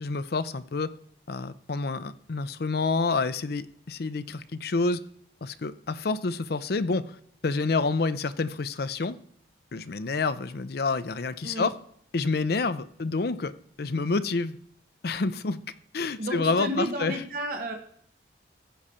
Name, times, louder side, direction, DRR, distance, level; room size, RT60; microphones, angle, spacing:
voice 1, 0.0-0.9 1.3-5.0 5.4-7.2 7.4-9.2 9.7-11.7 12.1-13.5 13.8-14.6 15.0-15.6 15.9-17.2, left 3 dB, 60° left, 13 dB, 0.5 m, -28 dB
voice 2, 16.2-17.7, right 1 dB, 50° right, 2 dB, 1.3 m, -31 dB
14.5 x 5.0 x 4.3 m, 0.63 s
head